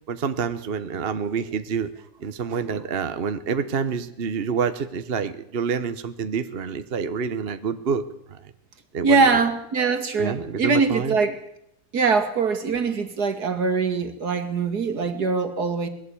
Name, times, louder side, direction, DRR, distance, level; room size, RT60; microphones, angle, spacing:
voice 1, 0.1-1.9 2.2-8.0 8.3-8.5 8.9-9.4 10.2-11.2, right 6 dB, 40° right, 10 dB, 1.1 m, -27 dB
voice 2, 9.0-11.4 11.9-15.9, right 4 dB, 70° right, 8 dB, 2.6 m, -22 dB
21.0 x 16.0 x 8.6 m, 0.77 s
omnidirectional pair, 1.8 m